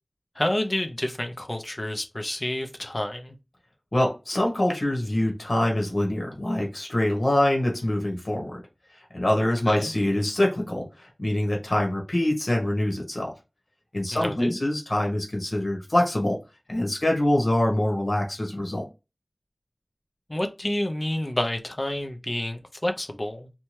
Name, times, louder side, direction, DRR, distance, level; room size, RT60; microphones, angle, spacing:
voice 1, 0.4-3.4 9.7-9.9 14.1-14.6 20.3-23.5, left 1 dB, 40° left, 0.5 m, -29 dB
voice 2, 3.9-8.6 9.1-13.3 13.9-16.4 16.7-18.8, left 1 dB, 65° left, 1.1 m, -24 dB
2.7 x 2.2 x 3.1 m
wide cardioid pair, 40°, 0 cm